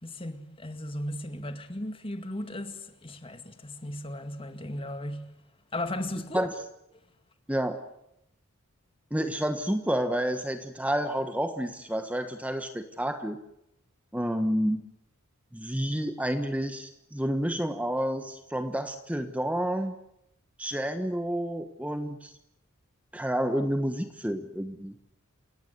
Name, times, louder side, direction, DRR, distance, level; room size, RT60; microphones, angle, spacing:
voice 1, 0.0-6.5, left 1 dB, 25° left, 2.0 m, -36 dB
voice 2, 7.5-7.8 9.1-13.4 14.1-14.8 15.5-19.9 20.6-22.3 23.1-24.9, equal, 5° right, 1.3 m, -29 dB
28.5 x 17.0 x 9.5 m
head